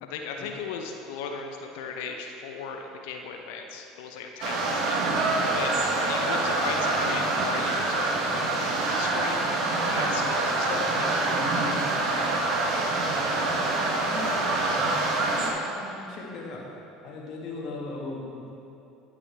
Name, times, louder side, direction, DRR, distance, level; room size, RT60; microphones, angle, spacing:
voice 1, 0.0-9.5 9.8-11.4, left 5 dB, 70° left, 3 dB, 0.6 m, -37 dB
sound 1, 4.4-15.5, right 2 dB, 55° right, 1.2 m, -26 dB
voice 2, 11.3-11.6 14.0-16.6 17.0-18.4, left 3 dB, 50° left, -3 dB, 1.9 m, -39 dB
11.5 x 6.9 x 3.4 m, 2.8 s
hypercardioid pair, 70°, 0 cm